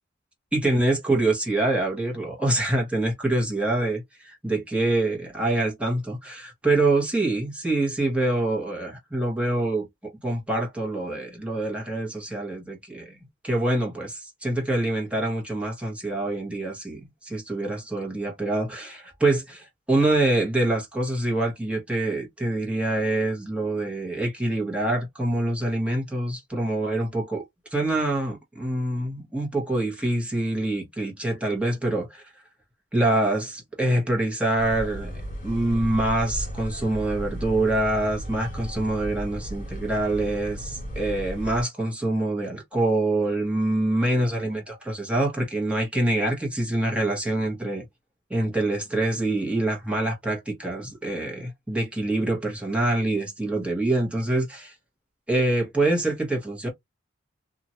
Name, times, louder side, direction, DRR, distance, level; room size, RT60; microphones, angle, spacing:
voice 1, 0.5-27.4 27.7-32.3 32.9-47.8 48.3-54.7 55.3-56.7, right 2 dB, 5° right, 1.2 m, -25 dB
sound 1, 34.6-41.6, equal, 45° left, 1.7 m, -35 dB
2.8 x 2.5 x 2.8 m
head